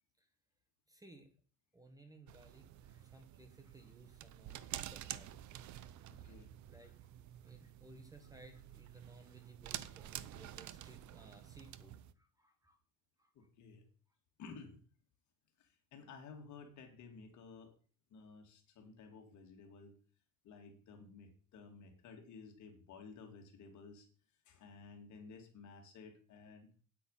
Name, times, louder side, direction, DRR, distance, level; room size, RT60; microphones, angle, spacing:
voice 1, 0.9-1.3 1.7-5.7 6.0-6.4 6.7-7.1 7.4-12.8 13.2-13.5, right 2 dB, 10° right, 6 dB, 1.4 m, -60 dB
sound 1, 2.3-12.1, right 12 dB, 55° right, 0.7 m, -49 dB
voice 2, 6.1-6.5 13.3-13.8 14.4-14.8 15.6-17.7 18.1-19.9 20.4-24.1 24.4-26.7, left 4 dB, 55° left, 4 dB, 2.6 m, -54 dB
9.1 x 8.4 x 5.7 m, 0.41 s
cardioid pair, 160°, 35 cm